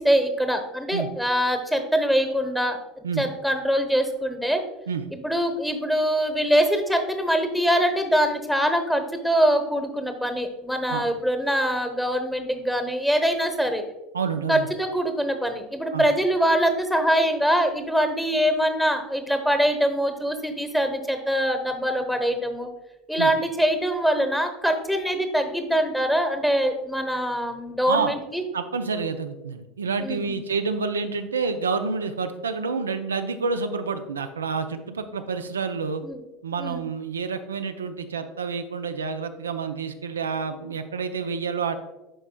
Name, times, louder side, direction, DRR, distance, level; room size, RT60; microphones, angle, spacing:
voice 1, 0.0-2.8 3.2-4.6 5.1-13.8 14.5-22.7 23.1-28.4 30.0-30.4 36.0-36.2 36.6-36.8, equal, ahead, 7 dB, 1.0 m, -23 dB
voice 2, 14.1-14.7 15.9-16.1 23.2-23.3 27.9-28.1 28.5-36.0 36.4-41.8, right 5 dB, 90° right, 8 dB, 0.4 m, -28 dB
11.0 x 4.4 x 2.2 m, 1.0 s
hypercardioid pair, 80°, 0 cm